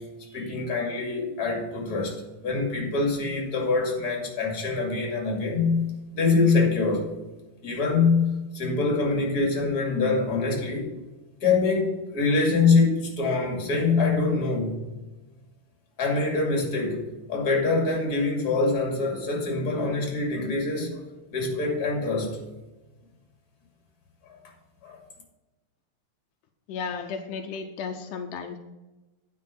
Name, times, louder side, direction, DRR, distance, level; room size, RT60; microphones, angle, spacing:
voice 1, 0.0-2.2 2.4-7.1 7.6-10.9 11.4-14.8 16.0-21.0 21.3-22.4 24.2-24.4 24.8-25.0, left 4 dB, 30° left, 0 dB, 2.5 m, -25 dB
voice 2, 26.7-28.6, left 5 dB, 80° left, 5 dB, 2.2 m, -34 dB
9.6 x 5.3 x 5.7 m, 1.1 s
omnidirectional pair, 3.7 m